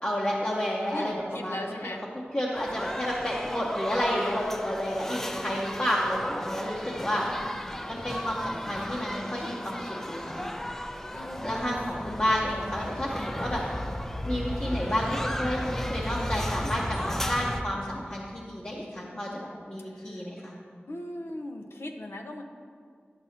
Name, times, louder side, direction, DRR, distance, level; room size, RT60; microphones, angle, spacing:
voice 1, 0.0-1.8 2.3-7.3 7.9-10.4 11.4-13.6 14.3-20.5, equal, 35° left, -4 dB, 0.9 m, -30 dB
voice 2, 0.9-2.0 7.2-7.8 11.1-12.2 18.9-19.4 19.8-20.3 20.9-22.4, left 1 dB, 80° left, 3 dB, 0.6 m, -40 dB
sound 1, 2.5-17.6, equal, 10° left, 0.4 m, -34 dB
10.5 x 6.0 x 2.8 m, 2.1 s
wide cardioid pair, 55°, 4 cm